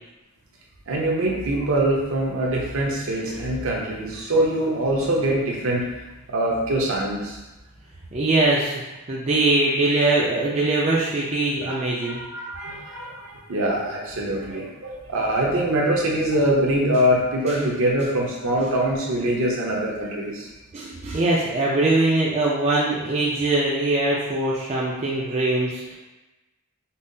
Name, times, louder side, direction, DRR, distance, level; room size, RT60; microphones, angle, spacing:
voice 1, 0.9-5.9 6.3-7.4 11.7-11.8 12.0-20.5, right 1 dB, 65° right, -2 dB, 0.7 m, -23 dB
voice 2, 8.1-8.8 9.1-12.2 17.5-17.6 20.7-25.9, right 2 dB, 30° right, -5 dB, 0.4 m, -22 dB
5.4 x 2.0 x 2.6 m, 1.1 s
head